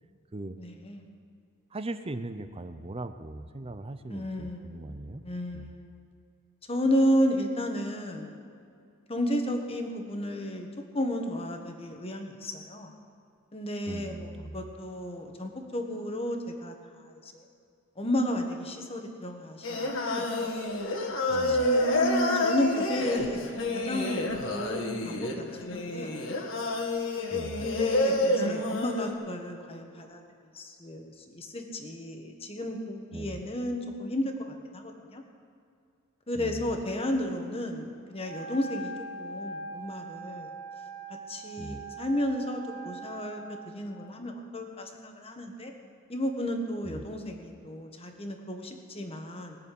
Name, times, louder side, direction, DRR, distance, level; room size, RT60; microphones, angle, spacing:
voice 1, 0.6-1.0 4.1-4.9 5.2-5.9 6.7-8.3 9.1-10.7 10.9-12.9 13.5-14.3 14.5-16.7 17.0-17.4 18.0-20.5 21.4-26.3 27.6-30.2 30.5-34.3 34.7-35.2 36.3-38.9 39.2-40.5 41.3-45.7 46.1-49.6, left 1 dB, 25° left, 3 dB, 1.4 m, -32 dB
voice 2, 1.7-5.3 5.5-5.7 13.8-14.6 21.3-21.6 27.3-27.7 33.1-33.4 36.4-36.7 41.6-41.8 46.8-47.0, right 2 dB, 25° right, 10 dB, 0.6 m, -39 dB
Singing, 19.6-29.1, left 1 dB, 60° left, 1.7 m, -29 dB
Wind instrument woodwind instrument, 38.2-43.8, right 3 dB, 80° right, 1.5 m, -41 dB
20.5 x 6.9 x 8.4 m, 2.4 s
head